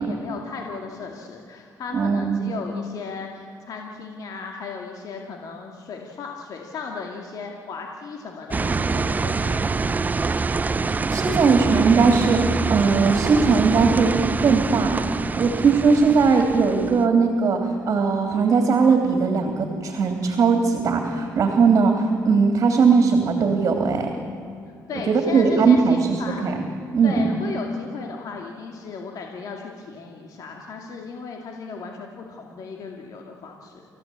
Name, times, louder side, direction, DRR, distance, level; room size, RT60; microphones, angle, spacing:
voice 1, 0.0-10.0 24.7-26.5 27.0-33.8, left 5 dB, 65° left, 1 dB, 2.3 m, -36 dB
voice 2, 1.9-2.5 11.1-15.0 15.4-24.1 25.1-26.2 26.4-26.6 26.9-27.2, right 5 dB, 55° right, 4 dB, 3.1 m, -19 dB
sound 1, 8.5-17.1, right 4 dB, 25° right, 0.6 m, -25 dB
29.5 x 15.0 x 8.7 m, 2.5 s
cardioid pair, 95°, 7 cm